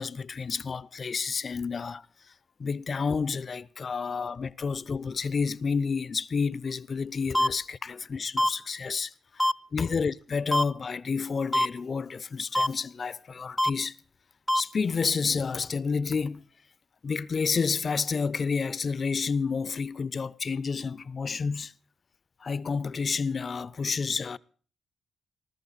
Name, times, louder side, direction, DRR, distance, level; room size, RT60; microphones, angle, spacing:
voice 1, 0.0-2.0 2.6-14.0 14.5-16.5 17.0-21.7 22.4-24.4, left 5 dB, 45° left, 0.6 m, -30 dB
sound 1, 7.3-7.5 8.4-8.5 9.4-9.5 10.5-10.6 11.5-11.7 12.6-12.7 13.6-13.7 14.5-14.6, left 1 dB, 5° left, 0.6 m, -22 dB
20.0 x 13.5 x 4.1 m
supercardioid pair, 60°, 0 cm